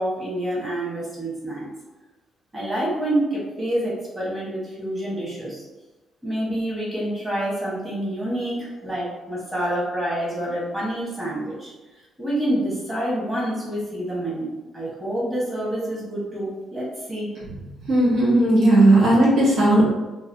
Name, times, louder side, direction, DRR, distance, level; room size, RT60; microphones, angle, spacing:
voice 1, 0.0-1.7 2.5-5.6 6.2-11.7 12.2-17.3, right 1 dB, 20° right, -6 dB, 1.4 m, -27 dB
voice 2, 17.9-19.8, right 1 dB, 75° right, -7 dB, 1.2 m, -16 dB
3.1 x 2.6 x 2.7 m, 1.1 s
cardioid pair, 90°, 0 cm